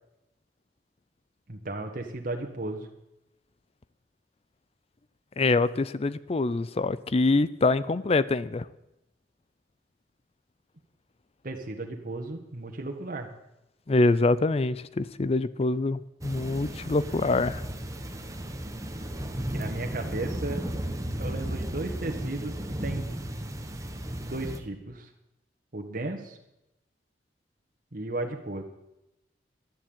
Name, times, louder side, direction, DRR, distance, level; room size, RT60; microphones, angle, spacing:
voice 1, 1.5-2.9 11.4-13.3 19.5-20.6 21.2-23.1 24.2-25.1 25.7-26.4 27.9-28.6, right 2 dB, 50° right, 3 dB, 1.5 m, -35 dB
voice 2, 5.4-8.7 13.9-17.6, left 3 dB, 35° left, 17 dB, 0.5 m, -25 dB
sound 1, 16.2-24.6, right 1 dB, 20° right, 1.4 m, -34 dB
12.0 x 11.0 x 8.8 m, 0.89 s
head